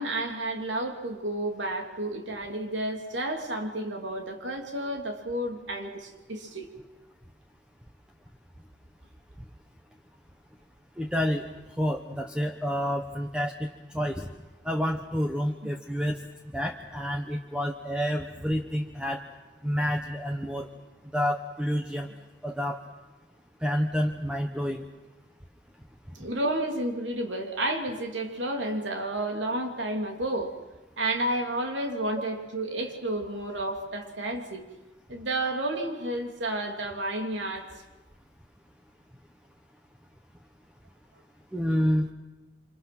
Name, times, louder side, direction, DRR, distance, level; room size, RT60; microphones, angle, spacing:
voice 1, 0.0-6.7 26.1-30.5 31.0-34.7 35.1-37.7, right 1 dB, 85° right, 3 dB, 3.0 m, -31 dB
voice 2, 11.0-11.4 11.8-13.7 13.9-14.3 14.6-16.2 16.5-19.2 19.6-20.7 21.1-22.1 22.4-22.8 23.6-24.8 41.5-42.1, equal, 5° right, 3 dB, 1.1 m, -28 dB
26.5 x 26.0 x 6.2 m, 1.1 s
head